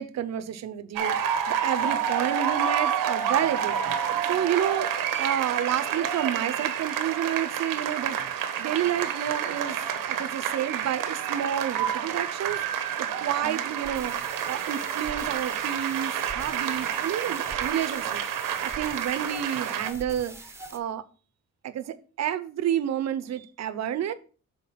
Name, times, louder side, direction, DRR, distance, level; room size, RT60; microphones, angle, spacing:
voice 1, 0.0-4.0 4.3-9.8 10.1-21.0 21.6-24.1, right 10 dB, 55° right, 0.7 m, -30 dB
sound 1, 1.0-19.9, right 8 dB, 85° right, 0.9 m, -29 dB
sound 2, 13.4-20.8, right 2 dB, 10° right, 0.7 m, -44 dB
5.8 x 3.9 x 5.5 m
cardioid pair, 125°, 33 cm